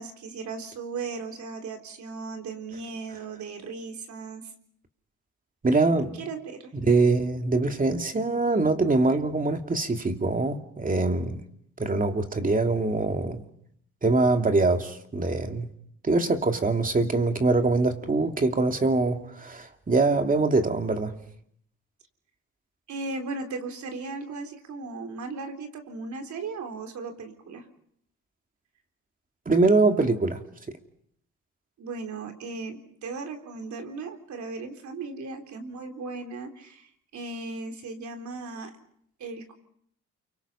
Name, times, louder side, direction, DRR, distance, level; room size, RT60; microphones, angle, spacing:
voice 1, 0.0-4.5 6.1-6.7 22.9-27.7 31.8-38.7 39.2-39.6, right 3 dB, 70° right, 3.9 m, -37 dB
voice 2, 5.6-6.2 6.8-11.4 11.8-13.4 14.0-15.7 16.0-21.1 29.5-30.4, right 3 dB, 25° right, 2.7 m, -23 dB
29.5 x 24.5 x 5.7 m
cardioid pair, 90°, 30 cm